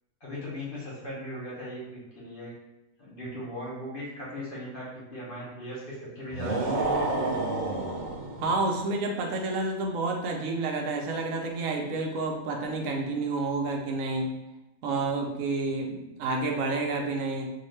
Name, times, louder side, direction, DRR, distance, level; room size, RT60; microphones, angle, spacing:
voice 1, 0.2-2.5 3.0-7.1, equal, 45° left, -6 dB, 0.9 m, -38 dB
sound 1, 6.3-8.7, right 2 dB, 90° right, 0.4 m, -29 dB
voice 2, 8.4-14.3 14.8-17.5, right 3 dB, 70° right, 2 dB, 0.9 m, -29 dB
3.7 x 2.4 x 3.2 m, 0.94 s
omnidirectional pair, 1.5 m